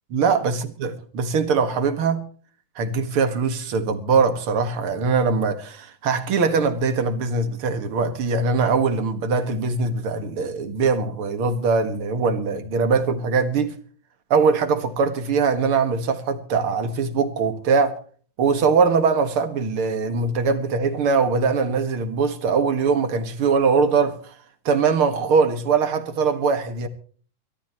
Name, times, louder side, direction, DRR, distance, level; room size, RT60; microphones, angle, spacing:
voice 1, 0.1-2.2 2.8-13.8 14.3-18.0 18.4-24.3 24.7-26.9, right 5 dB, 50° right, 2.2 m, -22 dB
24.0 x 13.5 x 3.0 m
omnidirectional pair, 3.7 m